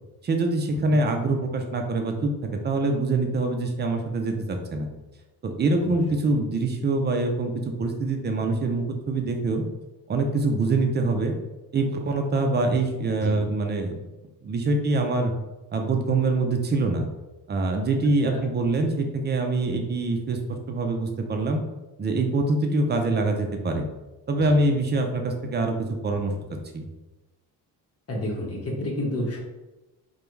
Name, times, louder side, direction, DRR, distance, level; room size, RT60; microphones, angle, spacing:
voice 1, 0.2-4.9 5.4-7.5 7.8-9.6 10.1-11.3 11.7-14.0 14.4-15.3 15.7-17.1 17.5-20.4 20.7-21.6 22.0-23.8 24.3-25.7 26.0-26.3 26.7-26.8, right 2 dB, 25° right, 4 dB, 0.4 m, -24 dB
voice 2, 28.1-29.4, left 1 dB, 35° left, -1 dB, 0.9 m, -31 dB
2.2 x 2.1 x 3.1 m, 1.1 s
cardioid pair, 80°, 42 cm